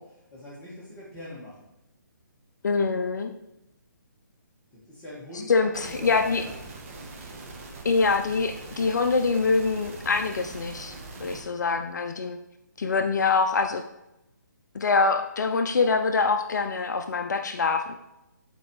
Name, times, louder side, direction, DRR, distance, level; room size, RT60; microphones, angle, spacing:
voice 1, 0.0-1.7 4.7-6.6, left 1 dB, 15° left, -9 dB, 2.0 m, -43 dB
voice 2, 2.6-3.3 5.5-6.4 7.8-12.4 12.8-13.8 14.7-18.0, left 4 dB, 60° left, 6 dB, 0.5 m, -24 dB
sound 1, 5.7-11.4, right 3 dB, 40° right, 1.4 m, -42 dB
11.5 x 4.4 x 3.3 m, 0.90 s
figure-of-eight pair, 145°, 11 cm